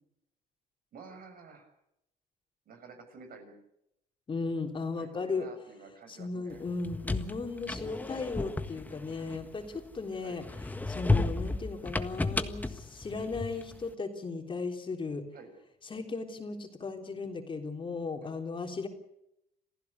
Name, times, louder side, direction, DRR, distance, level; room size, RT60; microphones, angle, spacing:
voice 1, 0.9-1.7 2.6-3.5 5.0-6.6 7.9-8.0 10.1-10.4 15.3-15.5 18.2-18.3, right 4 dB, 60° right, 6 dB, 6.7 m, -50 dB
voice 2, 4.3-5.5 6.1-10.4 10.9-15.2 15.9-18.9, left 4 dB, 30° left, 4 dB, 3.6 m, -36 dB
sound 1, 6.7-9.9 10.4-13.8, left 2 dB, 10° left, 1.5 m, -33 dB
28.0 x 15.5 x 8.3 m, 0.81 s
cardioid pair, 110°, 17 cm